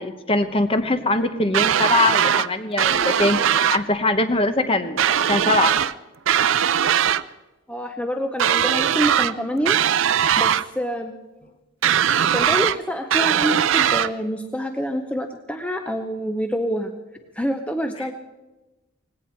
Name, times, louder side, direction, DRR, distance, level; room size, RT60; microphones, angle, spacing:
voice 1, 0.0-5.7 18.0-18.1, left 2 dB, 30° left, 9 dB, 1.0 m, -22 dB
sound 1, 1.5-2.5 2.8-3.8 5.0-5.9 6.3-7.2 8.4-9.3 9.7-10.6 11.8-12.8 13.1-14.1, right 9 dB, 75° right, 0.5 m, -20 dB
voice 2, 7.7-9.8 10.4-11.1 12.3-16.9 17.3-18.1, equal, 5° left, 6 dB, 0.7 m, -26 dB
19.0 x 16.5 x 4.4 m, 1.1 s
head